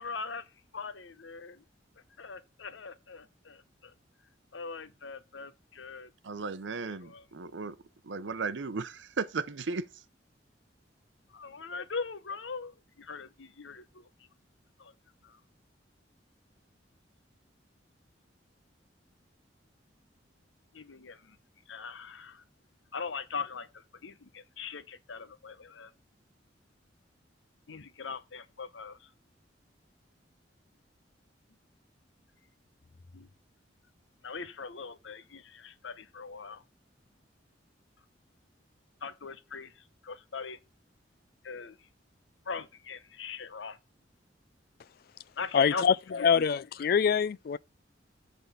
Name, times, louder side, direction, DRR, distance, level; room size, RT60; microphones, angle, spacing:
voice 1, 0.0-1.6 2.2-3.9 4.5-6.1 6.8-7.3 11.3-14.1 14.8-14.9 15.2-15.4 20.7-21.4 21.7-22.4 22.9-25.9 27.7-29.1 33.1-33.3 34.2-36.6 39.0-40.6 41.4-41.9 42.4-43.8 45.4-46.4, left 5 dB, 90° left, 0.8 m, -41 dB
voice 2, 6.2-7.8 8.0-9.9, right 4 dB, 80° right, 0.7 m, -35 dB
voice 3, 45.5-45.9 46.2-47.6, left 6 dB, 55° left, 0.3 m, -24 dB
8.1 x 3.7 x 6.5 m
head